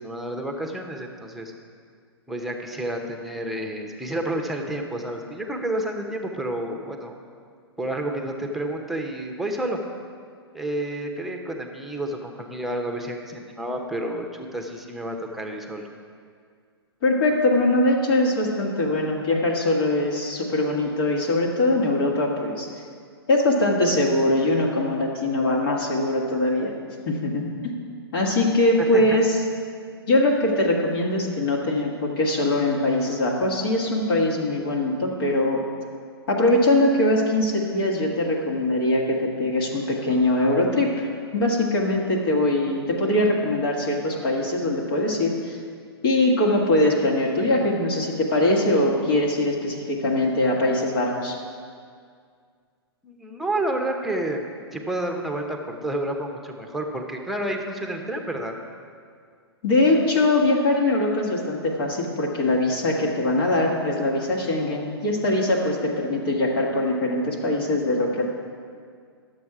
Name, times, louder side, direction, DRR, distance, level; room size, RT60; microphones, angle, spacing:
voice 1, 0.0-1.5 2.3-7.2 7.8-9.8 10.5-15.9 28.8-29.2 53.0-54.4 54.7-58.5, right 1 dB, ahead, 2 dB, 0.9 m, -30 dB
voice 2, 17.0-22.7 23.3-26.7 27.0-27.7 28.1-29.4 30.1-35.6 36.3-45.6 46.0-51.4 59.6-68.2, left 1 dB, 60° left, -2 dB, 1.7 m, -22 dB
11.0 x 7.4 x 4.8 m, 2.1 s
hypercardioid pair, 115°, 14 cm